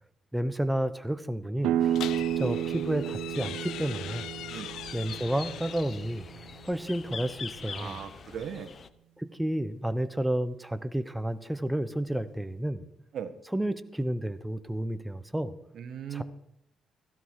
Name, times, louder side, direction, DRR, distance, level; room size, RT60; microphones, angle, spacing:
voice 1, 0.3-1.7 2.4-4.3 4.9-6.2 6.6-8.0 9.2-12.9 13.5-15.5 16.1-16.2, right 1 dB, 5° right, 12 dB, 1.0 m, -31 dB
sound 1, 1.6-7.2, right 11 dB, 90° right, 0.6 m, -32 dB
sound 2, 1.8-8.9, left 6 dB, 45° left, 1.0 m, -45 dB
sound 3, 1.9-6.0 7.3-8.5, left 12 dB, 85° left, 0.7 m, -42 dB
voice 2, 7.7-8.7 13.1-13.3 15.7-16.2, right 8 dB, 65° right, 9 dB, 1.5 m, -38 dB
16.0 x 16.0 x 4.8 m, 0.76 s
cardioid pair, 90°, 0 cm